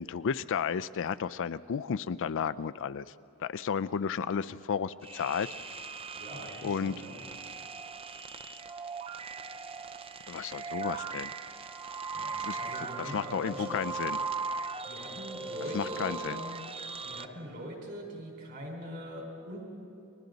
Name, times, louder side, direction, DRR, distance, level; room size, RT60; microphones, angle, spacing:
voice 1, 0.0-3.1 3.4-5.5 6.6-6.9 10.3-11.3 12.4-12.6 13.1-14.2 15.7-16.4, left 7 dB, 60° left, 15 dB, 0.4 m, -32 dB
sound 1, 5.0-17.3, right 4 dB, 25° right, 0.5 m, -39 dB
voice 2, 6.1-7.2 12.1-13.8 14.8-16.7 17.0-19.6, equal, 50° right, -1 dB, 4.8 m, -42 dB
30.0 x 21.5 x 4.0 m, 2.8 s
head